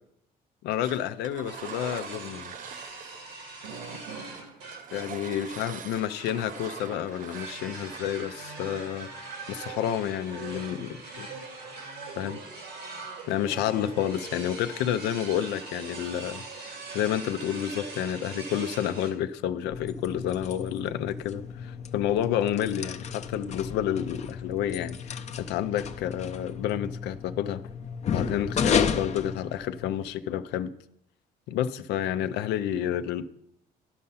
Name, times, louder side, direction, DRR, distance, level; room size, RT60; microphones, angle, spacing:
voice 1, 0.6-2.5 4.9-11.3 12.2-12.4 13.3-27.6 28.1-30.7 31.5-33.2, left 10 dB, 85° left, 11 dB, 0.5 m, -30 dB
Engine, 0.8-3.3 3.6-8.0, right 8 dB, 55° right, 0.6 m, -44 dB
sound 1, 1.5-19.1, right 3 dB, 90° right, 2.3 m, -42 dB
sound 2, 19.6-30.1, left 6 dB, 40° left, 0.6 m, -33 dB
11.5 x 5.5 x 5.6 m, 0.75 s
cardioid pair, 110°, 17 cm